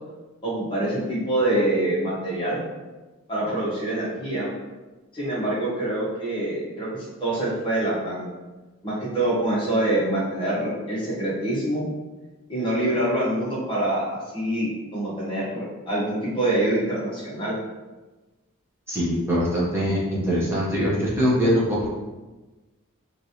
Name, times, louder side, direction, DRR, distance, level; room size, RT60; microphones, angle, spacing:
voice 1, 0.4-2.6 3.3-4.5 5.1-8.3 8.8-11.9 12.5-17.5, right 1 dB, 25° left, -8 dB, 1.0 m, -25 dB
voice 2, 18.9-21.9, equal, 10° right, -7 dB, 0.8 m, -22 dB
3.1 x 2.6 x 2.8 m, 1.2 s
head